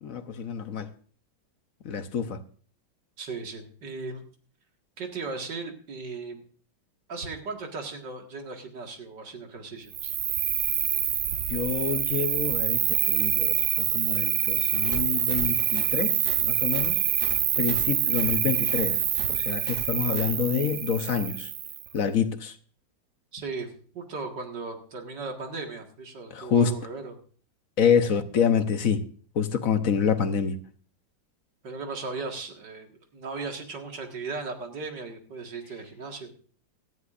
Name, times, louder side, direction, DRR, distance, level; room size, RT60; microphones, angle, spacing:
voice 1, 0.0-0.9 1.8-2.4 11.5-16.2 16.4-17.0 17.6-19.0 19.3-21.5 21.9-22.6 26.3-26.7 27.8-29.0 29.4-30.6, left 7 dB, 55° left, 1.1 m, -27 dB
voice 2, 3.2-4.2 5.0-6.4 7.1-10.1 23.3-27.2 31.6-36.3, right 4 dB, 65° right, 2.5 m, -37 dB
Cricket, 9.9-21.9, right 10 dB, 80° right, 0.6 m, -26 dB
sound 1, 14.6-20.3, right 1 dB, 15° right, 3.0 m, -42 dB
18.0 x 13.0 x 2.5 m
omnidirectional pair, 2.1 m